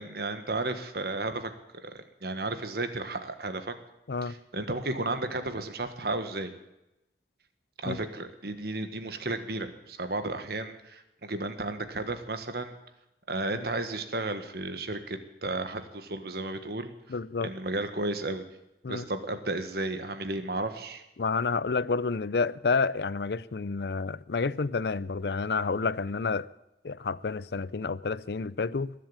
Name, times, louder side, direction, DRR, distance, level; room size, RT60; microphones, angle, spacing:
voice 1, 0.0-1.5 1.8-3.7 4.2-6.5 7.8-12.7 13.3-16.9 17.4-18.4 18.9-21.0, right 2 dB, 60° right, 1.5 m, -33 dB
voice 2, 17.1-17.5 18.8-19.0 21.2-26.5 26.8-28.9, left 4 dB, 65° left, 0.5 m, -29 dB
20.5 x 7.7 x 8.9 m
head